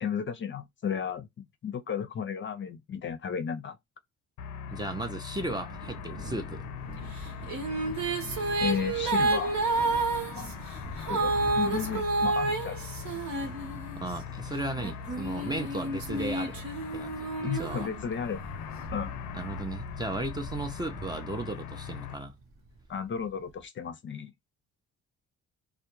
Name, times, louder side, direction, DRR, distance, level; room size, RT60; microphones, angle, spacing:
voice 1, 0.0-3.8 8.6-9.6 10.3-10.5 11.1-12.8 17.4-18.6 18.9-19.1 22.9-24.3, left 7 dB, 40° left, 0.5 m, -34 dB
sound 1, 4.4-22.2, left 8 dB, 85° left, 0.5 m, -41 dB
voice 2, 4.7-6.6 14.0-16.6 16.9-17.9 19.3-22.4, right 2 dB, 15° right, 0.4 m, -35 dB
Thunder, 5.2-23.6, right 2 dB, 45° right, 0.8 m, -46 dB
sound 2, 7.2-14.2 14.8-18.5, right 3 dB, 70° right, 1.0 m, -30 dB
2.2 x 2.1 x 2.9 m
cardioid pair, 90°, 30 cm